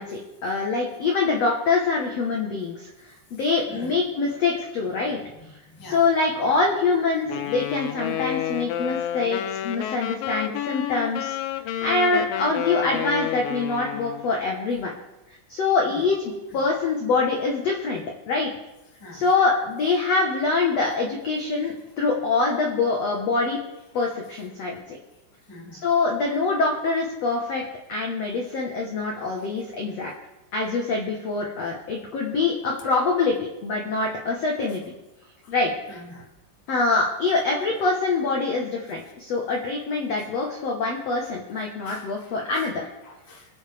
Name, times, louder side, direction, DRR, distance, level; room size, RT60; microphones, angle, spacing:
voice 1, 0.0-2.9 3.3-5.2 5.9-11.4 11.8-14.9 15.5-18.5 19.1-23.6 23.9-25.0 25.8-30.1 30.5-33.4 33.6-34.9 35.5-35.7 36.7-42.9, left 3 dB, 70° left, -1 dB, 1.5 m, -24 dB
voice 2, 5.7-6.0 15.9-16.0 19.0-19.3 25.5-25.8 30.6-30.7 35.9-36.2 41.8-42.3 43.0-43.5, left 1 dB, 10° left, -3 dB, 1.0 m, -43 dB
Wind instrument woodwind instrument, 7.3-14.3, left 11 dB, 90° left, 3.2 m, -30 dB
26.5 x 9.2 x 3.5 m, 0.96 s
omnidirectional pair, 5.2 m